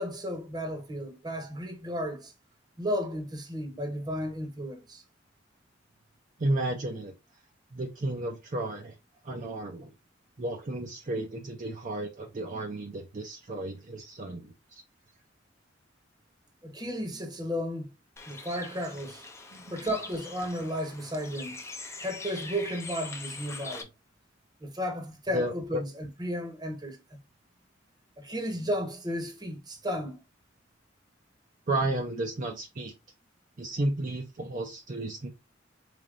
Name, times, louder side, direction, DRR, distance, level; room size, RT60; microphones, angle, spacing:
voice 1, 0.0-2.3 2.8-5.0 16.6-17.9 18.3-19.2 19.7-21.6 22.0-23.9 24.6-27.0 28.2-30.2, equal, 20° right, 0.9 m, -34 dB
voice 2, 6.4-7.1 7.7-9.0 9.2-9.9 10.4-14.5 19.5-19.9 25.3-25.8 31.7-32.9 33.6-35.3, right 1 dB, 45° right, 0.6 m, -32 dB
Bird, 18.2-23.8, left 3 dB, 15° left, 0.5 m, -43 dB
4.0 x 3.3 x 2.5 m
head